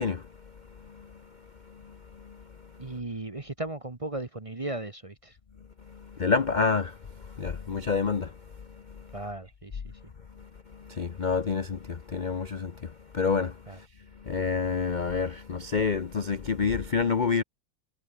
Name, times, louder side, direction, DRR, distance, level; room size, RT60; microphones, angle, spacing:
voice 1, 0.0-3.0 5.8-9.2 10.3-13.9 14.1-17.4, left 5 dB, 50° left, 0.5 m, -30 dB
voice 2, 2.8-5.3 9.1-9.8 13.7-13.8, right 2 dB, 20° right, 1.0 m, -36 dB
omnidirectional pair, 2.0 m